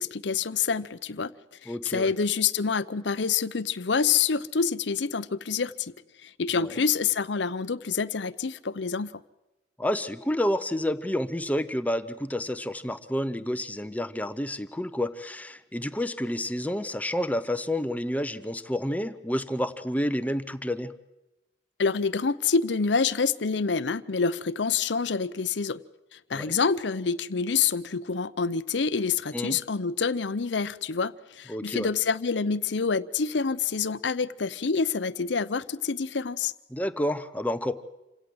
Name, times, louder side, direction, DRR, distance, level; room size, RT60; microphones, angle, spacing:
voice 1, 0.0-1.3 1.6-5.9 6.2-9.2 21.8-25.8 26.1-36.5, left 5 dB, 70° left, 0.7 m, -27 dB
voice 2, 1.7-2.1 6.6-6.8 9.8-20.9 26.3-26.6 29.3-29.6 31.5-31.9 36.7-37.8, left 1 dB, 10° left, 0.7 m, -29 dB
27.0 x 17.0 x 7.8 m
head